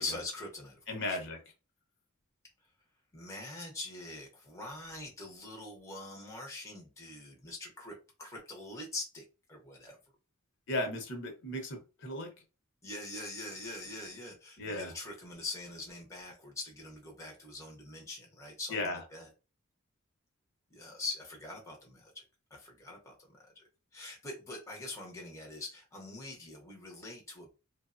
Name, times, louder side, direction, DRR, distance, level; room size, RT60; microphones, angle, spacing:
voice 1, 0.0-1.2 3.1-9.2 9.5-10.0 12.8-19.3 20.7-22.2 22.5-23.6 23.9-27.5, left 2 dB, 15° left, -1 dB, 0.6 m, -43 dB
voice 2, 0.9-1.4 10.7-12.3 14.6-14.9 18.7-19.0, left 1 dB, 55° left, 3 dB, 0.8 m, -35 dB
3.1 x 2.0 x 2.4 m, 0.31 s
head